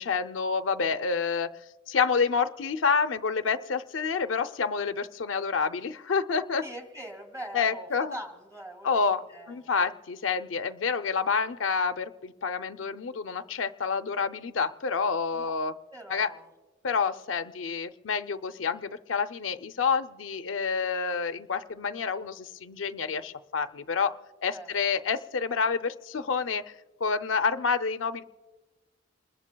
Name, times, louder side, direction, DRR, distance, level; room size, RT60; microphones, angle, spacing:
voice 1, 0.0-1.5 1.9-6.6 7.5-8.2 8.8-9.2 9.5-15.7 16.1-16.3 16.8-26.7 27.0-28.2, left 5 dB, 80° left, 9 dB, 0.5 m, -28 dB
voice 2, 6.6-9.8 15.3-15.5 15.9-16.5 24.5-24.7, right 1 dB, 20° right, 5 dB, 2.3 m, -42 dB
28.0 x 21.0 x 2.3 m, 1.2 s
head